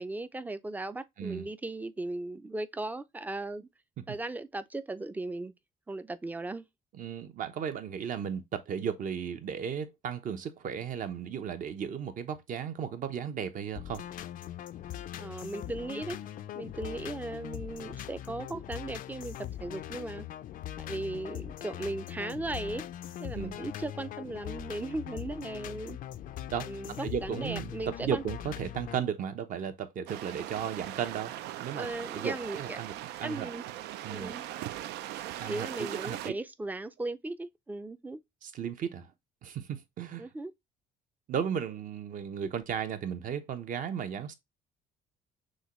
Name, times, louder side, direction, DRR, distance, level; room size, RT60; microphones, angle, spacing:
voice 1, 0.0-3.7 4.1-5.5 5.9-6.7 15.2-16.2 16.5-20.3 20.8-22.9 23.2-26.0 26.7-28.2 31.7-32.8 33.2-33.6 34.1-34.5 35.4-38.2 40.2-40.5, right 2 dB, 10° right, 0.4 m, -37 dB
voice 2, 7.0-14.1 23.3-23.6 26.5-26.7 27.0-27.7 28.0-31.3 31.6-31.9 32.1-32.9 33.2-33.5 34.0-34.3 35.4-35.7 35.9-36.3 38.4-39.1 39.4-40.3 41.3-44.3, right 8 dB, 50° right, 0.8 m, -35 dB
sound 1, 13.8-29.0, left 11 dB, 55° left, 0.4 m, -41 dB
sound 2, 30.1-36.3, right 13 dB, 80° right, 0.4 m, -40 dB
6.3 x 2.3 x 3.0 m
cardioid pair, 110°, 17 cm